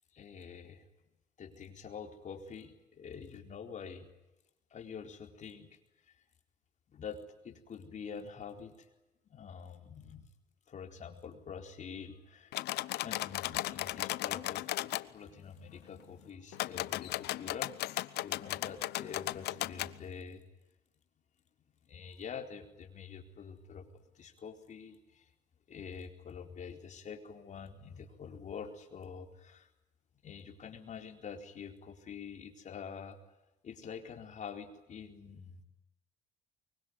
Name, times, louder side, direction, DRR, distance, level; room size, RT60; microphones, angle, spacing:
voice 1, 0.1-0.8 1.4-4.1 4.7-5.7 6.9-8.9 9.3-10.2 10.7-12.6 13.0-20.4 21.9-23.9 24.2-25.3 25.7-29.7 30.2-33.2 33.6-35.6, left 6 dB, 45° left, 4 dB, 4.3 m, -46 dB
sound 1, 12.5-15.0 16.5-19.9, left 16 dB, 75° left, 0.9 m, -36 dB
24.5 x 23.0 x 9.7 m, 0.95 s
cardioid pair, 110°, 17 cm